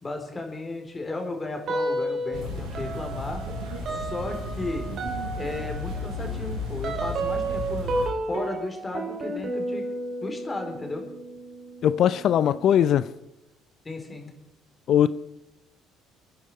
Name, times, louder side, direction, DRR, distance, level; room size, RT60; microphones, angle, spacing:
voice 1, 0.0-3.4 3.9-4.9 5.3-8.0 8.3-9.9 10.2-11.0 13.8-14.3, left 2 dB, 25° left, 3 dB, 4.1 m, -34 dB
sound 1, 1.7-2.4 2.7-13.1, right 2 dB, 55° right, 3.0 m, -32 dB
sound 2, 2.3-8.1, left 2 dB, 70° right, 6.0 m, -34 dB
voice 2, 11.8-13.1 14.9-15.1, left 10 dB, 60° left, 16 dB, 0.6 m, -20 dB
27.0 x 10.0 x 4.9 m, 0.93 s
hypercardioid pair, 60°, 0 cm